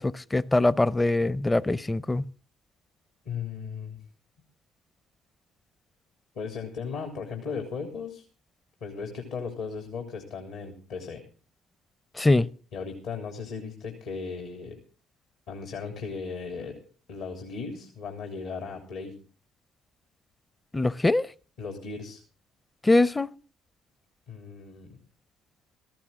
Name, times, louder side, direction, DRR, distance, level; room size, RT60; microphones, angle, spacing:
voice 1, 0.0-2.3 12.2-12.5 20.7-21.3 22.8-23.3, left 2 dB, 15° left, 0.7 m, -23 dB
voice 2, 3.2-4.0 6.3-8.2 8.8-11.2 12.7-14.8 15.5-16.8 17.1-19.2 21.6-22.2 24.3-25.0, left 5 dB, 70° left, 3.3 m, -36 dB
17.0 x 15.0 x 3.8 m
hypercardioid pair, 55°, 0 cm